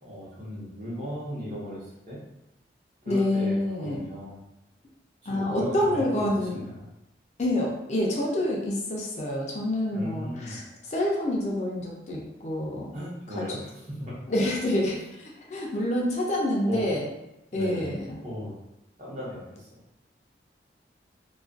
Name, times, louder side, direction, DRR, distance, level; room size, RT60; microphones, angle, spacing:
voice 1, 0.0-2.2 3.0-4.4 5.2-6.7 9.9-10.6 12.9-14.0 16.7-16.8 17.5-17.9 18.2-18.5 19.0-19.8, equal, 40° right, -7 dB, 0.8 m, -37 dB
voice 2, 3.1-4.1 5.3-6.6 7.4-10.6 10.9-13.0 13.4-13.5 14.3-17.0 17.5-18.2, left 1 dB, 40° left, -2 dB, 0.4 m, -27 dB
2.3 x 2.2 x 2.4 m, 0.91 s
head